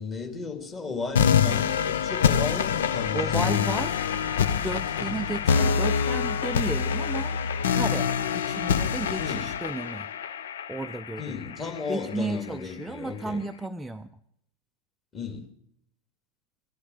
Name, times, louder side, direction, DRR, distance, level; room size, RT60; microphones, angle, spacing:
voice 1, 0.0-3.9 5.0-5.2 9.2-9.5 11.2-13.4 15.1-15.4, left 5 dB, 25° left, 4 dB, 2.6 m, -34 dB
sound 1, 1.2-12.1, left 7 dB, 60° left, 0.7 m, -26 dB
voice 2, 3.1-4.0 4.5-7.4 7.7-10.1 10.7-11.3 11.9-14.1, right 2 dB, 5° right, 7 dB, 0.5 m, -33 dB
16.0 x 11.5 x 6.4 m, 0.72 s
figure-of-eight pair, 90°, 0 cm